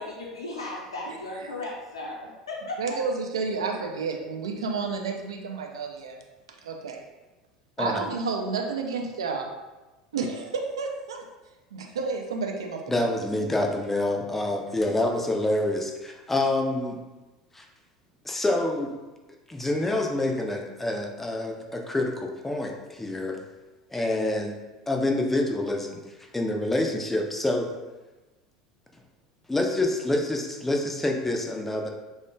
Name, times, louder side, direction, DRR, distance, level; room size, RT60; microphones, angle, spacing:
voice 1, 0.0-2.8, left 2 dB, 75° left, -3 dB, 0.6 m, -36 dB
voice 2, 2.8-6.2 6.6-7.0 7.8-9.5 10.1-11.2 11.7-13.1, right 4 dB, 70° right, 2 dB, 0.4 m, -31 dB
voice 3, 12.9-17.0 17.5-17.6 18.2-19.0 19.5-23.4 23.9-24.6 24.9-26.0 26.3-27.7 29.5-31.9, left 2 dB, 10° left, 2 dB, 0.4 m, -27 dB
3.4 x 2.1 x 2.6 m, 1.1 s
figure-of-eight pair, 75°, 3 cm